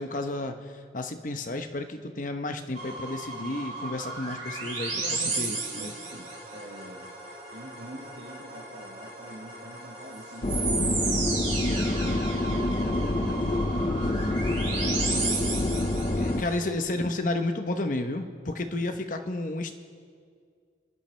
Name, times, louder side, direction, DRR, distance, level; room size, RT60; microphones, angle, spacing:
voice 1, 0.0-4.9 5.4-5.9 16.1-19.7, left 2 dB, 45° left, 6 dB, 0.9 m, -31 dB
sound 1, 2.7-16.5, right 3 dB, 40° right, 4.5 m, -34 dB
voice 2, 4.6-7.1 7.5-12.5 13.1-13.9 14.2-15.5, equal, 80° right, -1 dB, 1.9 m, -45 dB
sound 2, 10.4-16.4, left 1 dB, 30° left, 0.6 m, -27 dB
29.5 x 10.5 x 3.3 m, 2.1 s
head